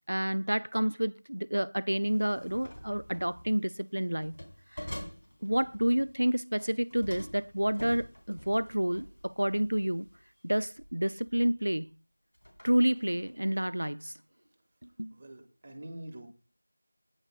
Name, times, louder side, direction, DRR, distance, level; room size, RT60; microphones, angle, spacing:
voice 1, 0.1-4.4 4.7-4.9 5.4-10.1 10.4-11.9 12.6-14.1 14.8-15.1, right 1 dB, 70° right, 0.6 m, -29 dB
sound 1, 2.0-3.6 4.2-6.2 6.6-10.2 10.8-11.0 11.3-11.8 12.3-13.4, equal, 60° left, 3.7 m, -47 dB
voice 2, 15.1-16.3, right 1 dB, 20° right, 1.6 m, -45 dB
28.0 x 9.8 x 2.2 m
figure-of-eight pair, 175°, 0 cm